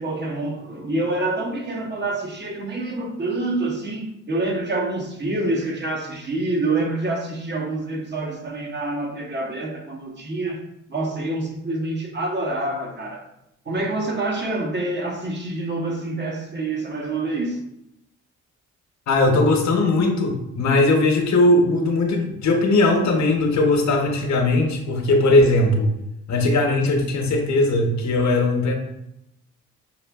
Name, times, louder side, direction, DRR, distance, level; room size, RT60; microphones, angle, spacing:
voice 1, 0.0-10.6 10.9-13.3 13.7-17.6, right 2 dB, 35° right, 0.9 m, -27 dB
voice 2, 19.1-25.9 26.3-28.8, left 2 dB, 60° left, 0.9 m, -19 dB
5.6 x 2.5 x 2.3 m
supercardioid pair, 70°, 32 cm